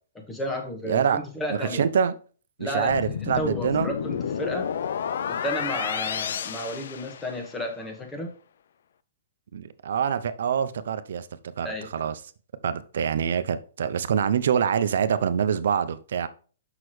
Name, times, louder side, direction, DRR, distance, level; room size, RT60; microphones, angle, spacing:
voice 1, 0.3-1.8 2.6-3.0 3.3-4.7 5.3-8.3 11.6-11.9, equal, 10° left, 1.2 m, -32 dB
voice 2, 0.8-1.2 1.5-2.1 2.6-3.9 9.5-11.3 11.6-12.2 12.6-16.3, right 7 dB, 70° right, 0.6 m, -25 dB
sound 1, 2.9-7.6, left 8 dB, 70° left, 0.4 m, -31 dB
6.1 x 5.8 x 3.2 m
hypercardioid pair, 155°, 0 cm